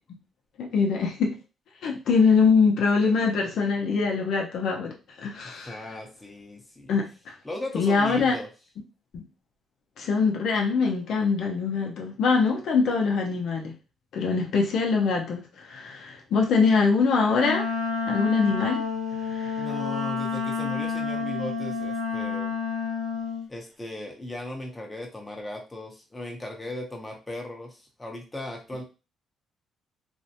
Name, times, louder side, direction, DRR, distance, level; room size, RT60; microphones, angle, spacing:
voice 1, 0.6-1.3 1.8-5.8 6.9-7.3 7.7-8.3 9.1-9.2 10.0-13.7 14.1-17.6 18.1-18.8 19.2-19.7, left 5 dB, 75° left, 1 dB, 0.6 m, -23 dB
voice 2, 5.4-6.9 7.4-8.5 19.6-22.5 23.5-28.8, left 1 dB, 15° left, 1 dB, 0.7 m, -37 dB
Wind instrument woodwind instrument, 17.3-23.4, left 5 dB, 80° right, 1.1 m, -29 dB
2.5 x 2.1 x 2.7 m, 0.32 s
cardioid pair, 90°, 0 cm